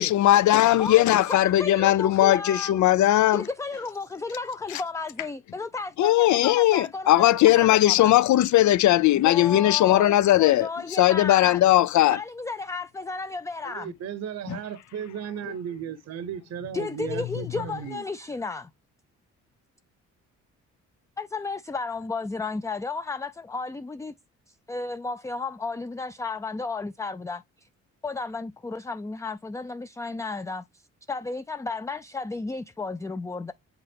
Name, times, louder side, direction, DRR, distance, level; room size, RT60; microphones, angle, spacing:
voice 1, 0.0-3.4 6.0-10.7 11.0-12.2 14.5-14.6, left 14 dB, 70° left, 0.6 m, -19 dB
voice 2, 0.8-2.8 3.3-8.1 9.1-11.6 12.1-13.9 16.7-18.7 21.2-24.1 24.5-27.7 28.0-33.5, left 4 dB, 10° left, 0.4 m, -33 dB
voice 3, 13.6-18.0, right 8 dB, 60° right, 0.9 m, -35 dB
8.1 x 4.1 x 3.4 m
cardioid pair, 90°, 30 cm